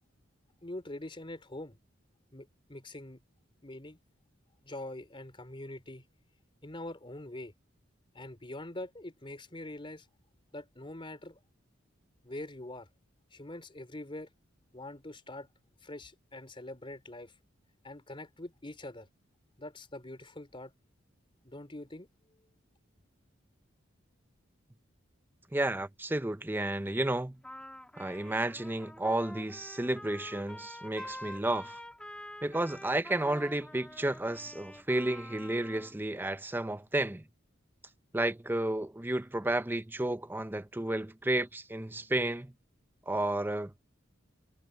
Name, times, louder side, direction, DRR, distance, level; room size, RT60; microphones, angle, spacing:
voice 1, 0.6-1.8 2.3-3.2 3.6-4.0 4.6-6.0 6.6-7.5 8.1-10.1 10.5-11.4 12.2-12.9 13.3-14.3 14.7-15.5 15.8-17.4 17.8-19.1 19.6-20.7 21.4-22.1, left 1 dB, 25° left, 3.4 m, -44 dB
voice 2, 25.5-27.4 28.0-31.8 32.4-37.2 38.1-42.5 43.1-43.7, right 1 dB, 10° right, 0.6 m, -32 dB
Trumpet, 27.4-36.0, left 1 dB, 5° left, 2.9 m, -47 dB
head